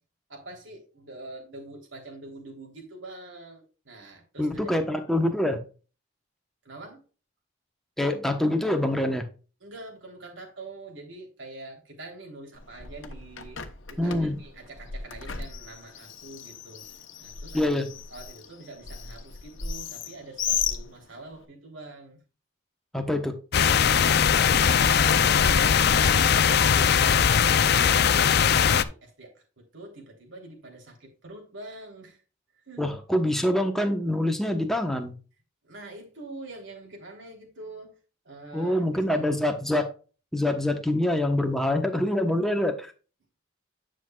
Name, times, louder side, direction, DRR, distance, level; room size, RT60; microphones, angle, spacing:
voice 1, 0.3-4.7 6.6-7.0 9.6-13.6 13.9-16.8 17.2-17.7 18.1-22.2 27.8-32.2 32.6-32.9 35.6-38.0 38.3-39.4, right 2 dB, 70° right, 3.5 m, -45 dB
voice 2, 4.4-5.6 8.0-9.3 14.0-14.4 17.5-17.9 22.9-23.4 32.8-35.1 38.5-39.9 40.3-42.9, left 1 dB, ahead, 1.1 m, -25 dB
Bird, 12.6-21.4, left 7 dB, 75° left, 1.1 m, -36 dB
sound 1, 23.5-28.8, left 7 dB, 50° left, 0.5 m, -20 dB
10.0 x 6.3 x 2.4 m
head